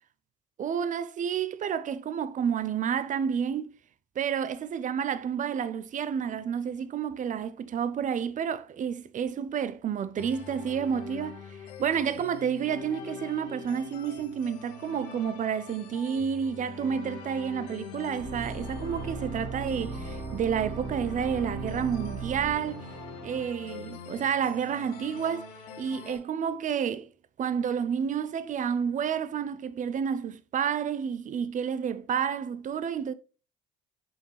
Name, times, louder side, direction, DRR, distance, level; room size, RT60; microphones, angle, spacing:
voice 1, 0.6-3.7 4.2-22.9 23.2-25.5 25.8-27.1 27.4-33.1, right 7 dB, 40° right, 0.7 m, -30 dB
sound 1, 10.2-26.2, left 7 dB, 75° left, 1.3 m, -44 dB
sound 2, 18.2-23.5, right 3 dB, 85° right, 1.7 m, -37 dB
6.2 x 5.3 x 3.3 m
hypercardioid pair, 60°, 20 cm